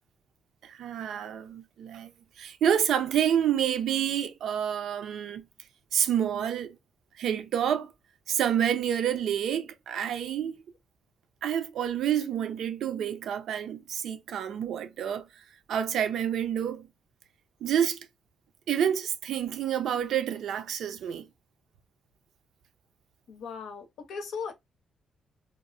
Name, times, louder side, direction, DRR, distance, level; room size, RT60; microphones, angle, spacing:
voice 1, 0.6-2.1 2.4-5.4 5.9-6.8 7.2-7.9 8.3-10.5 11.4-15.3 15.7-16.9 17.6-18.1 18.7-21.3, right 9 dB, 80° right, 0.4 m, -28 dB
voice 2, 23.3-24.5, left 5 dB, 85° left, 0.7 m, -37 dB
2.9 x 2.0 x 2.5 m
cardioid pair, 125°, 0 cm